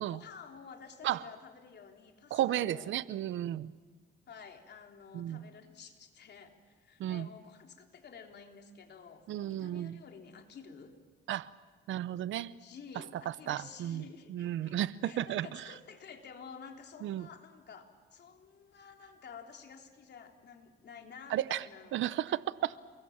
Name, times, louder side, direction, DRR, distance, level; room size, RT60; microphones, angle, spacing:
voice 1, 0.0-2.9 4.3-11.0 12.6-14.8 15.0-22.8, left 6 dB, 60° left, 3 dB, 3.4 m, -51 dB
voice 2, 2.3-3.7 5.1-5.5 7.0-7.3 9.3-10.0 11.3-11.5 11.9-12.5 13.3-15.7 17.0-17.3 21.3-21.7 21.9-22.8, right 12 dB, 75° right, 17 dB, 0.8 m, -34 dB
29.5 x 22.5 x 7.3 m, 1.4 s
cardioid pair, 90°, 20 cm